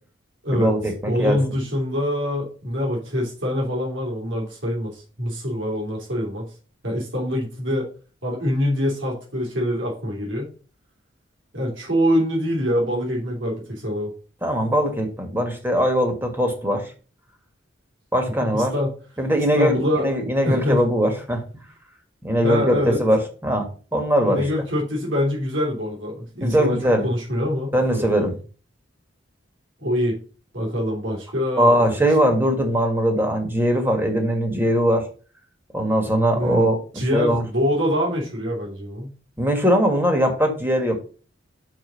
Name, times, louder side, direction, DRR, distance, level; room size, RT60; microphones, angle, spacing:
voice 1, 0.5-1.4 14.4-16.9 18.1-18.7 19.2-21.4 22.2-24.4 26.4-27.0 27.7-28.4 31.6-35.1 35.7-37.4 39.4-41.0, equal, 10° right, 4 dB, 1.5 m, -21 dB
voice 2, 1.0-6.5 6.8-7.9 8.2-10.5 11.5-14.1 18.4-18.9 19.5-20.1 20.4-20.8 22.4-23.0 24.2-26.8 27.0-28.1 29.8-30.2 30.5-31.9 36.3-36.7 36.9-39.1, equal, 75° right, -3 dB, 3.1 m, -24 dB
6.0 x 4.4 x 6.3 m, 0.38 s
head